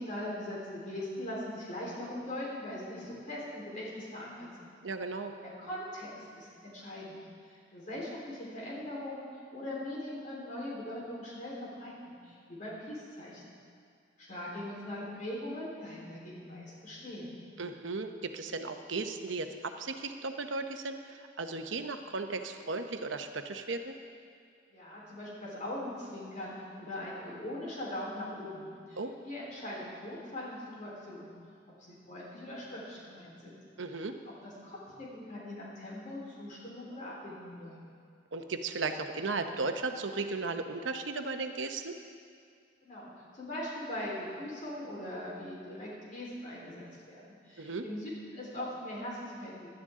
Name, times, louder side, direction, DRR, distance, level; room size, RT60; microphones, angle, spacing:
voice 1, 0.0-4.7 5.4-7.2 7.5-13.5 14.2-17.4 24.7-29.0 29.2-31.3 31.8-33.6 34.3-37.8 42.8-49.7, left 1 dB, 45° left, -5 dB, 3.9 m, -41 dB
voice 2, 4.8-5.3 17.6-23.9 29.0-29.1 33.8-34.1 38.3-42.0 47.6-47.9, right 3 dB, 90° right, 7 dB, 0.8 m, -36 dB
17.5 x 12.0 x 3.7 m, 2.3 s
head